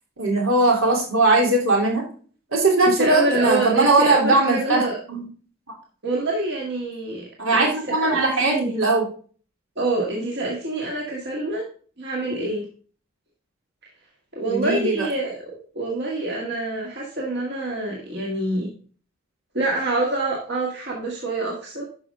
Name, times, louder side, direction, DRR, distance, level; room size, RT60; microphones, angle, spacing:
voice 1, 0.2-2.1 2.5-4.8 5.1-5.3 7.4-9.0 14.5-15.1, right 2 dB, 75° right, -1 dB, 3.3 m, -19 dB
voice 2, 3.0-5.0 6.0-7.7 8.0-8.8 9.8-11.7 12.0-12.7 14.3-15.4 15.7-18.7 19.5-21.8, right 2 dB, 50° right, -2 dB, 1.9 m, -26 dB
12.0 x 5.5 x 3.7 m, 0.42 s
head